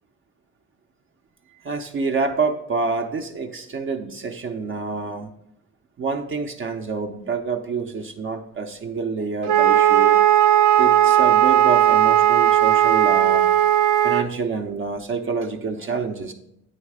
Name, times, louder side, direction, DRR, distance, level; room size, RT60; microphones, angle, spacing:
voice 1, 1.6-5.3 6.0-10.2 10.8-13.5 14.0-16.3, right 4 dB, 45° right, 3 dB, 0.6 m, -27 dB
Wind instrument woodwind instrument, 9.5-14.3, right 11 dB, 85° right, 0.7 m, -16 dB
9.3 x 3.2 x 4.8 m, 0.78 s
cardioid pair, 90°, 30 cm